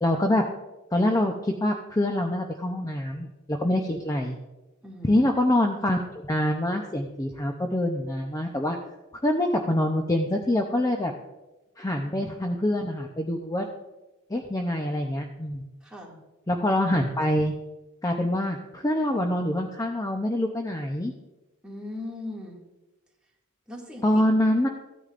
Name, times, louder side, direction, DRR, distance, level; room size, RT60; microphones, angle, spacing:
voice 1, 0.0-0.5 0.9-4.4 5.0-8.8 9.2-11.1 11.8-13.7 14.3-15.6 16.5-17.6 18.0-21.1 24.0-24.7, left 1 dB, 15° left, 3 dB, 0.6 m, -25 dB
voice 2, 4.8-5.2 15.8-16.2 21.6-22.6 23.7-24.2, left 1 dB, 5° right, -3 dB, 2.2 m, -39 dB
15.0 x 9.7 x 2.5 m, 1.0 s
head